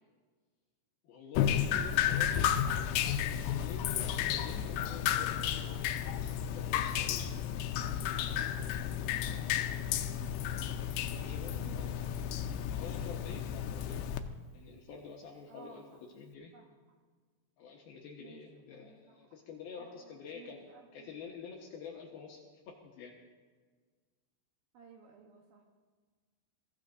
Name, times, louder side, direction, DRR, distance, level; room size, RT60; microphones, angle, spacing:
voice 1, 1.0-2.9 3.2-5.9 6.4-7.2 10.7-12.0 12.7-14.0 14.5-16.6 17.6-20.6 20.9-22.4 22.7-23.1, left 5 dB, 70° left, 0 dB, 2.6 m, -48 dB
Drip, 1.3-14.2, left 10 dB, 85° left, 2.4 m, -32 dB
voice 2, 2.2-2.5 9.3-10.2 11.5-12.7 15.5-16.0 16.5-16.7 18.2-19.2 19.8-21.1 24.7-25.6, right 5 dB, 70° right, 1 dB, 2.4 m, -56 dB
23.0 x 15.0 x 2.6 m, 1.5 s
omnidirectional pair, 5.4 m